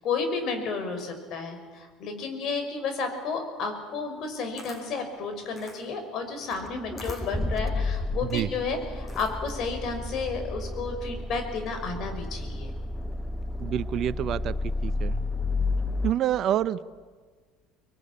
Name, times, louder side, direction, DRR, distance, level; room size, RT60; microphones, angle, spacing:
voice 1, 0.0-12.7, left 4 dB, 55° left, 6 dB, 5.8 m, -32 dB
Camera, 4.2-9.6, left 2 dB, 30° left, 7.7 m, -48 dB
Accelerating revving vroom, 6.5-16.1, left 2 dB, 10° left, 1.1 m, -31 dB
voice 2, 13.6-14.5 14.8-15.1 16.0-16.8, right 11 dB, 55° right, 15 dB, 0.9 m, -27 dB
25.5 x 21.5 x 9.9 m, 1.5 s
hypercardioid pair, 70°, 0 cm